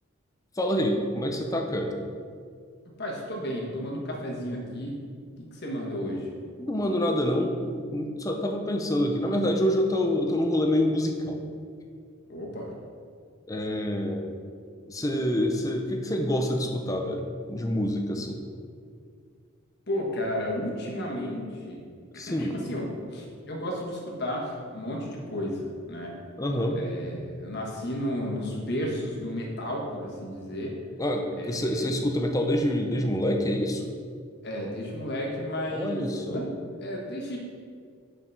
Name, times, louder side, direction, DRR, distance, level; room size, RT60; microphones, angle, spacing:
voice 1, 0.6-1.9 6.6-11.4 13.5-14.4 14.9-18.4 22.1-22.6 26.4-26.8 31.0-33.9 35.7-36.4, left 1 dB, 15° left, 3 dB, 0.5 m, -27 dB
voice 2, 3.0-5.0 5.4-6.3 12.3-12.7 19.9-21.8 22.1-26.1 26.7-30.8 31.4-31.9 34.4-37.4, equal, 50° left, -1 dB, 1.3 m, -33 dB
5.7 x 5.0 x 5.3 m, 2.1 s
head